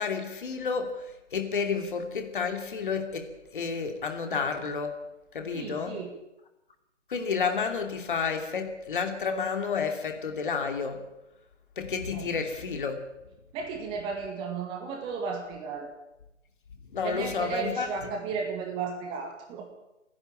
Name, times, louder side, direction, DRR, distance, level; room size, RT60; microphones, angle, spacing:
voice 1, 0.0-3.3 3.5-5.0 5.3-6.0 7.1-11.0 11.8-13.0 16.9-17.9, left 5 dB, 45° left, 5 dB, 2.8 m, -30 dB
voice 2, 5.5-6.1 12.1-12.3 13.5-15.9 17.0-19.7, right 5 dB, 15° right, 3 dB, 1.9 m, -34 dB
30.0 x 10.5 x 8.7 m, 0.90 s
figure-of-eight pair, 145°, 37 cm